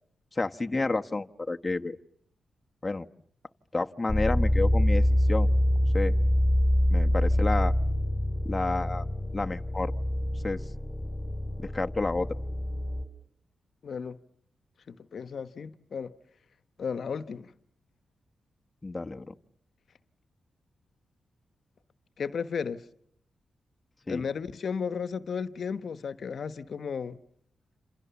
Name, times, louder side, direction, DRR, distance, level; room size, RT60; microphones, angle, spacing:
voice 1, 0.3-2.0 2.8-3.1 3.7-5.5 5.9-6.1 6.9-7.7 8.4-9.1 9.3-9.9 10.4-10.6 11.6-12.4 18.8-19.3 24.1-24.2, left 3 dB, 25° left, 1.2 m, -30 dB
sound 1, 4.1-13.0, left 1 dB, 10° left, 3.7 m, -26 dB
voice 2, 13.8-14.2 14.9-16.1 16.8-17.5 22.2-22.8 24.1-27.2, left 6 dB, 65° left, 1.2 m, -34 dB
28.0 x 28.0 x 7.1 m
cardioid pair, 75°, 0 cm